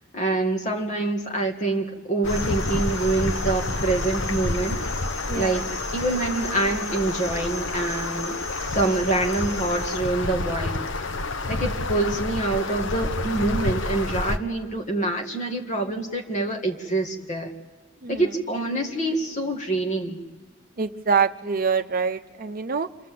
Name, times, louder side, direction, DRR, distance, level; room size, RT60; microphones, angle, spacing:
voice 1, 0.1-5.0 5.3-5.6 5.9-8.4 8.7-10.9 11.5-17.5 18.1-20.2, right 2 dB, 35° left, 2 dB, 1.9 m, -26 dB
sound 1, 2.2-14.4, left 2 dB, 70° left, 0.9 m, -29 dB
sound 2, 2.3-10.0, left 1 dB, 15° left, 5.8 m, -37 dB
voice 2, 5.3-5.6 18.0-18.3 20.8-22.9, right 5 dB, 45° right, 8 dB, 0.7 m, -25 dB
27.0 x 26.5 x 7.6 m, 1.5 s
head